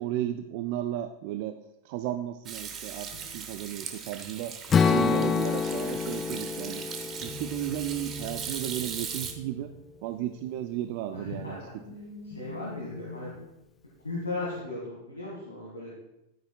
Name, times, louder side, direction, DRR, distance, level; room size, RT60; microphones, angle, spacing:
voice 1, 0.0-1.6 1.8-4.5 4.8-6.9 7.2-9.7 10.0-11.8, right 13 dB, 45° right, 8 dB, 0.4 m, -34 dB
Hands / Sink (filling or washing), 2.5-9.3, right 7 dB, 30° right, 1.0 m, -39 dB
sound 1, 3.1-3.8 7.2-10.3 10.8-13.4, left 2 dB, 40° left, 3.7 m, -44 dB
Strum, 4.7-8.9, left 6 dB, 20° left, 0.4 m, -28 dB
voice 2, 11.1-11.8 12.3-13.3 14.0-15.9, left 2 dB, 80° left, -5 dB, 2.0 m, -36 dB
11.5 x 9.2 x 2.4 m, 0.89 s
figure-of-eight pair, 90°, 0 cm